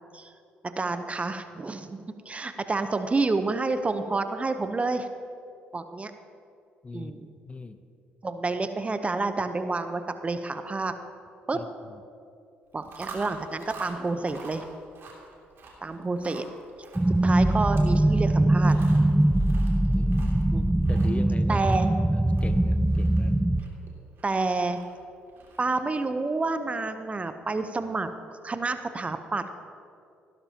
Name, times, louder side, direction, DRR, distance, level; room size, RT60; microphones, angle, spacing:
voice 1, 0.6-5.1 5.7-6.1 6.9-7.3 8.2-10.9 11.5-11.6 12.7-14.6 15.8-16.5 17.2-18.8 20.5-20.6 21.5-21.9 24.2-24.8 25.6-28.1 28.4-29.5, right 3 dB, 25° right, 9 dB, 0.8 m, -29 dB
voice 2, 7.4-7.8 11.5-12.0 19.9-20.4 20.9-21.6 22.1-23.4, left 3 dB, 25° left, 10 dB, 0.7 m, -40 dB
Chewing mastication, 12.7-25.9, right 4 dB, 55° right, 2.6 m, -48 dB
sound 1, 17.0-23.6, right 1 dB, 10° right, 0.4 m, -22 dB
16.0 x 12.0 x 2.9 m, 2.5 s
hypercardioid pair, 55°, 5 cm